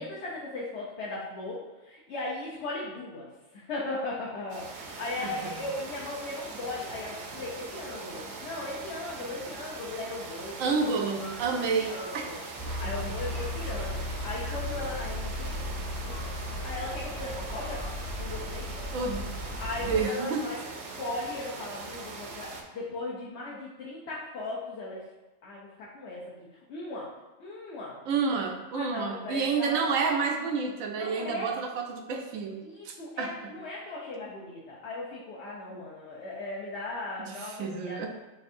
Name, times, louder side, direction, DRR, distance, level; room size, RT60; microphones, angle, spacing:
voice 1, 0.0-3.3 3.5-10.7 11.2-12.4 12.8-18.9 19.6-20.6 21.0-25.1 25.4-27.1 27.4-28.0 28.7-29.8 30.9-31.5 32.6-38.0, left 2 dB, 60° left, -5 dB, 1.0 m, -38 dB
sound 1, 4.5-22.6, right 3 dB, 60° right, 0.8 m, -42 dB
voice 2, 5.2-5.5 10.6-12.3 12.8-12.9 18.9-19.3 19.8-20.4 28.1-33.3 35.7-35.8 37.2-38.1, right 5 dB, 85° right, 3 dB, 1.0 m, -30 dB
sound 2, 12.6-20.0, left 1 dB, 35° left, 0.8 m, -36 dB
6.1 x 2.7 x 2.5 m, 1.1 s
omnidirectional pair, 1.4 m